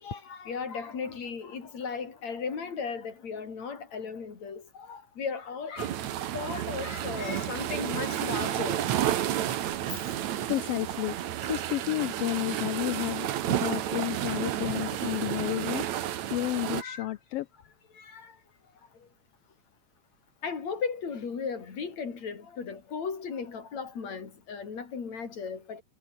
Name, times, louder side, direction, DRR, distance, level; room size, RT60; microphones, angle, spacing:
voice 1, 0.0-6.0 6.3-9.1 14.3-14.4 16.7-17.1 18.0-18.3 20.4-25.8, left 5 dB, 60° left, 4.7 m, -36 dB
sound 1, 5.8-16.8, right 11 dB, 70° right, 2.5 m, -31 dB
voice 2, 10.5-15.8 16.3-17.5, left 16 dB, 80° left, 1.4 m, -31 dB
omnidirectional pair, 3.5 m